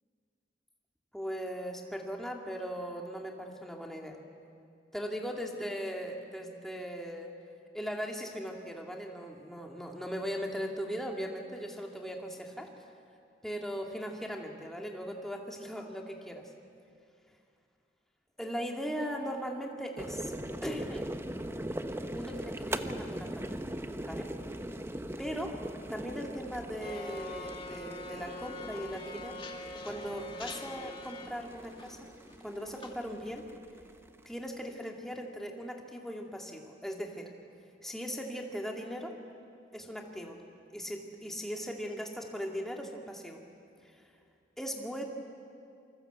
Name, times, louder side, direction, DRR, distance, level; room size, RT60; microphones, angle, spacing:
voice 1, 1.1-4.2 4.9-7.3 7.7-12.7 13.4-16.5 18.4-20.3 20.6-21.1 22.1-23.4 24.0-24.3 25.2-25.6 25.9-29.4 29.8-32.0 32.4-33.5 34.3-37.3 37.8-39.2 39.7-40.4 40.7-43.4 43.9-44.0 44.6-45.0, equal, ahead, 1 dB, 2.6 m, -39 dB
sound 1, 20.0-34.5, right 1 dB, 15° right, 0.9 m, -41 dB
sound 2, 26.8-31.3 31.7-32.0 32.3-32.9, left 2 dB, 30° left, 2.2 m, -43 dB
27.5 x 25.0 x 8.2 m, 2.4 s
head